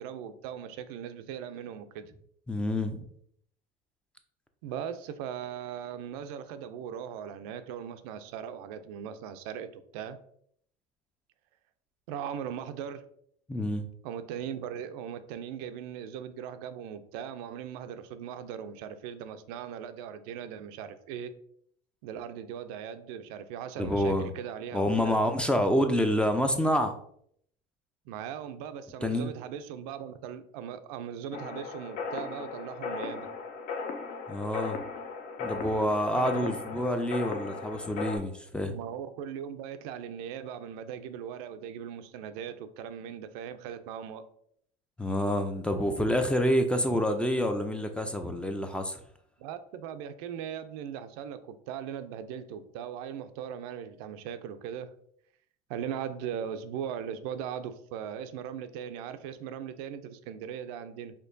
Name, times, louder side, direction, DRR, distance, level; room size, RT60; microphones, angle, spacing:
voice 1, 0.0-2.1 4.6-10.2 12.1-13.0 14.0-21.3 22.0-25.2 28.1-33.3 36.1-36.5 38.7-44.2 49.4-54.9 55.7-61.1, right 8 dB, 85° right, 0.4 m, -39 dB
voice 2, 2.5-3.1 13.5-13.8 23.8-24.3 24.7-26.9 29.0-29.3 34.3-34.8 35.4-38.7 45.0-49.0, equal, 5° left, 0.3 m, -27 dB
sound 1, 31.3-38.2, left 4 dB, 55° left, 0.6 m, -37 dB
4.4 x 2.8 x 2.6 m
supercardioid pair, 110°, 18 cm